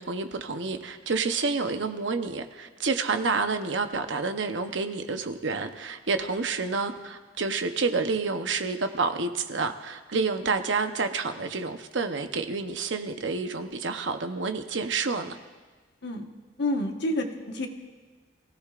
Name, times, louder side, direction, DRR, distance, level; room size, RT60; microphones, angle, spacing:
voice 1, 0.0-15.4, right 4 dB, 70° right, 7 dB, 0.9 m, -29 dB
voice 2, 16.6-17.7, left 1 dB, 65° left, 3 dB, 1.4 m, -28 dB
27.5 x 16.5 x 2.5 m, 1.3 s
head